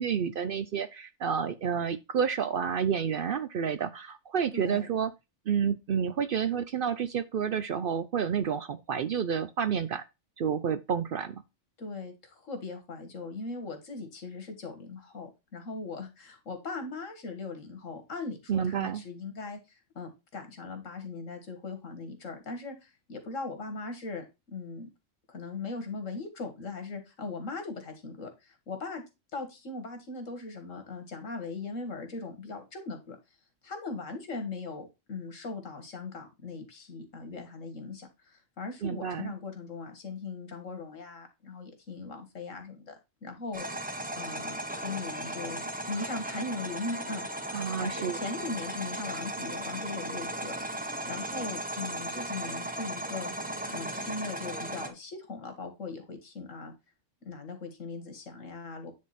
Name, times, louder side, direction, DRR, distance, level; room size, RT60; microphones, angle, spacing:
voice 1, 0.0-5.1 5.5-10.0 10.4-11.4 18.5-19.0 38.8-39.3 47.5-48.2, right 7 dB, 60° right, 0.6 m, -30 dB
voice 2, 4.5-4.9 11.8-24.9 25.3-29.0 29.3-33.2 33.6-43.0 43.2-45.6 45.9-47.5 47.8-56.7 57.3-58.9, left 3 dB, 85° left, 2.0 m, -39 dB
sound 1, 43.5-54.9, right 1 dB, 10° right, 0.8 m, -36 dB
9.5 x 3.7 x 4.1 m
omnidirectional pair, 1.3 m